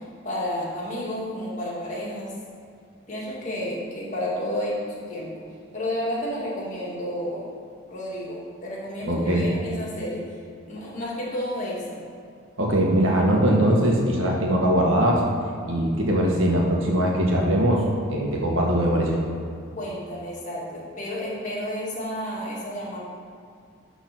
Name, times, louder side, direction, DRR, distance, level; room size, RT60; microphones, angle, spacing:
voice 1, 0.2-2.4 3.1-5.3 5.7-7.5 7.9-10.3 10.6-12.0 19.7-23.0, left 1 dB, 35° left, -6 dB, 2.2 m, -31 dB
voice 2, 9.0-9.5 12.6-15.2 15.7-17.8 18.1-19.2, right 1 dB, 70° right, -2 dB, 1.6 m, -21 dB
10.5 x 4.0 x 6.0 m, 2.3 s
head